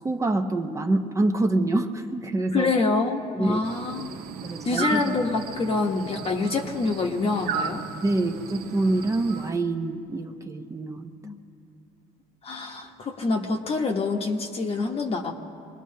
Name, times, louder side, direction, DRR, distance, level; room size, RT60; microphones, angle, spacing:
voice 1, 0.0-2.7 3.3-3.6 4.4-5.1 8.0-11.1, right 2 dB, 20° right, 5 dB, 0.7 m, -26 dB
voice 2, 2.5-4.2 4.6-7.8 11.2-11.4 12.4-15.3, left 3 dB, 40° left, 0 dB, 1.0 m, -26 dB
sound 1, 3.6-9.5, right 7 dB, 70° right, 0.9 m, -35 dB
24.5 x 20.0 x 2.8 m, 2.5 s
cardioid pair, 120°, 16 cm